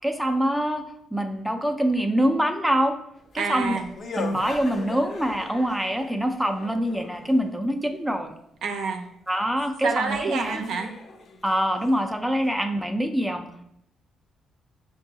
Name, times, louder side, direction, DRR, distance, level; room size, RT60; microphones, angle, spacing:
voice 1, 0.0-3.0 3.3-3.8 4.2-8.3 9.3-10.6 11.4-13.5, equal, ahead, 4 dB, 0.4 m, -25 dB
sound 1, 3.3-7.5 9.4-9.5 10.1-12.5, left 4 dB, 55° left, 0.5 m, -39 dB
voice 2, 3.4-3.9 8.6-9.1 9.8-10.9, right 5 dB, 75° right, 4 dB, 0.5 m, -27 dB
5.8 x 2.3 x 2.8 m, 0.76 s
cardioid pair, 90°, 0 cm